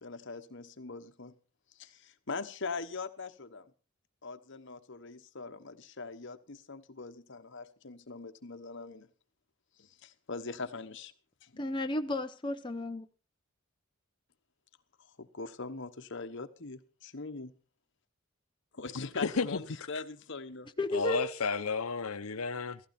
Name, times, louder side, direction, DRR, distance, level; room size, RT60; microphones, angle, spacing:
voice 1, 0.0-1.3 1.7-3.7 4.2-9.1 9.8-11.1 11.4-11.5 15.0-17.5 18.8-20.7, left 4 dB, 60° left, 1.2 m, -42 dB
voice 2, 11.6-13.1 20.8-21.3, left 1 dB, 20° left, 0.7 m, -33 dB
voice 3, 19.0-19.6 20.9-22.8, left 4 dB, 80° left, 0.8 m, -32 dB
16.0 x 15.5 x 4.3 m
head